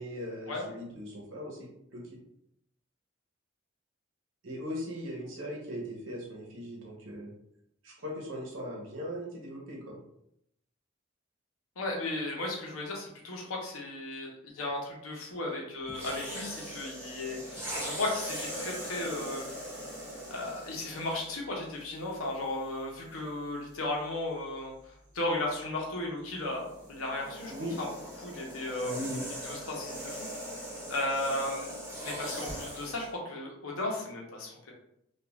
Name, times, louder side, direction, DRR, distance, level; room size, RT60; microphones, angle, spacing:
voice 1, 0.0-2.0 4.4-7.3 7.8-10.0 27.5-27.8 28.9-29.3, equal, 70° right, -1 dB, 0.8 m, -39 dB
voice 2, 11.8-19.5 20.3-24.7 25.1-27.9 28.2-28.9 29.4-30.3 30.9-31.7 32.0-34.7, left 2 dB, 85° left, -1 dB, 0.8 m, -35 dB
sound 1, 15.9-21.4 22.2-22.4 26.4-33.1, equal, 10° right, 0.7 m, -40 dB
3.0 x 2.4 x 2.3 m, 0.76 s
head